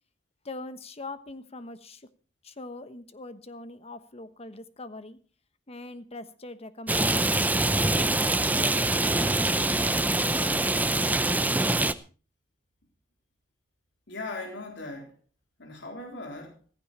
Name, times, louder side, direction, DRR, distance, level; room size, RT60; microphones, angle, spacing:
voice 1, 0.4-2.1 2.4-5.2 5.7-7.6, left 2 dB, 35° left, 12 dB, 1.2 m, -42 dB
Rain, 6.9-11.9, right 2 dB, 10° right, 0.6 m, -24 dB
voice 2, 14.1-15.2 15.6-16.6, left 2 dB, 70° left, 2 dB, 3.8 m, -38 dB
15.0 x 15.0 x 4.3 m, 0.36 s
head